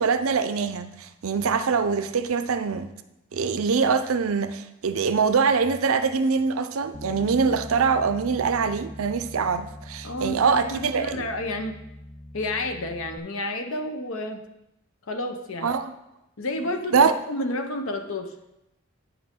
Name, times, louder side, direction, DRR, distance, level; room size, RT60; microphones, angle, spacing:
voice 1, 0.0-2.9 3.3-11.3 15.6-15.9 16.9-17.1, right 5 dB, 85° right, 0.5 m, -23 dB
Bass guitar, 6.9-13.2, left 1 dB, 10° left, 0.4 m, -42 dB
voice 2, 10.0-11.8 12.3-14.4 15.1-15.7 16.4-18.3, left 1 dB, 80° left, 0.8 m, -30 dB
9.4 x 5.9 x 3.7 m
head